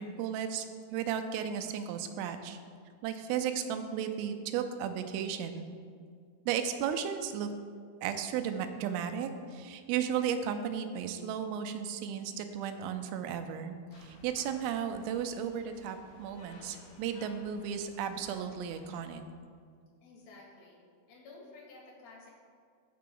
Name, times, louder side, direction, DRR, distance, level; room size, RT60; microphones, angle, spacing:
voice 1, 0.0-2.6 3.0-5.7 6.5-7.5 8.0-19.2, right 8 dB, 85° right, 7 dB, 3.3 m, -34 dB
sound 1, 13.9-19.0, left 2 dB, 70° left, 2.0 m, -56 dB
voice 2, 20.0-20.8 21.1-22.3, left 3 dB, 45° left, -4 dB, 2.5 m, -52 dB
16.0 x 5.9 x 3.8 m, 2.1 s
omnidirectional pair, 5.8 m